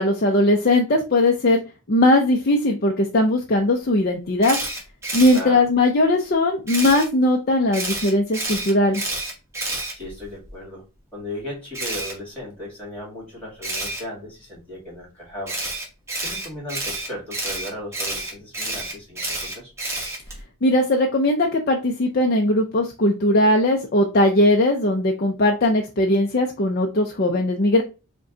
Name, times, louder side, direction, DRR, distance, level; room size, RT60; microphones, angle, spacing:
voice 1, 0.0-1.6 1.9-4.6 5.1-9.0 20.6-27.8, left 1 dB, 45° left, 2 dB, 0.5 m, -19 dB
Camera, 4.4-5.4 6.7-7.1 7.7-10.5 11.7-12.1 13.6-14.0 15.5-20.4, right 2 dB, 15° right, 1.2 m, -29 dB
voice 2, 5.3-5.6 9.9-10.8 11.1-15.6 16.2-19.7, left 1 dB, 5° left, -3 dB, 2.1 m, -36 dB
5.1 x 2.2 x 3.8 m, 0.30 s
head